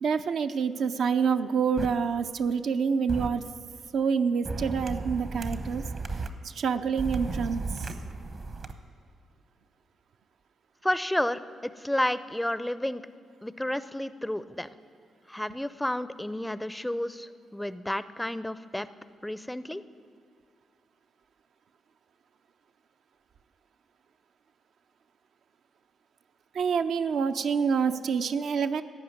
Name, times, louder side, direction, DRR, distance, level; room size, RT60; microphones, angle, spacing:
voice 1, 0.0-3.4 3.9-5.8 6.4-7.9 26.5-28.8, right 6 dB, 70° right, 8 dB, 0.5 m, -27 dB
sound 1, 1.8-1.9 3.1-3.3 4.4-6.3 7.0-8.7, right 3 dB, 45° right, 0.9 m, -34 dB
voice 2, 10.8-13.0 13.4-14.7 15.3-18.9 19.2-19.8, left 1 dB, 5° left, 15 dB, 0.4 m, -31 dB
14.5 x 5.7 x 9.4 m, 2.3 s
cardioid pair, 75°, 0 cm